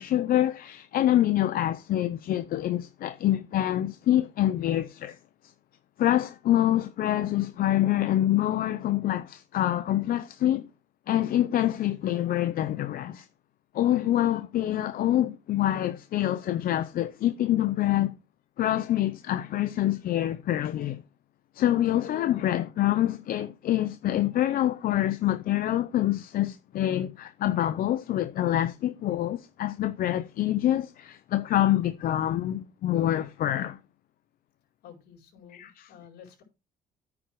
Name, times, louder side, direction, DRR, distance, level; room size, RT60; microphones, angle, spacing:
voice 1, 0.0-5.2 6.0-10.7 11.1-13.3 13.7-18.1 18.6-21.0 21.5-33.8 35.6-35.7, left 13 dB, 60° left, 0.7 m, -26 dB
voice 2, 34.8-36.4, left 8 dB, 75° left, 4.7 m, -51 dB
9.4 x 6.2 x 4.7 m
cardioid pair, 110°, 17 cm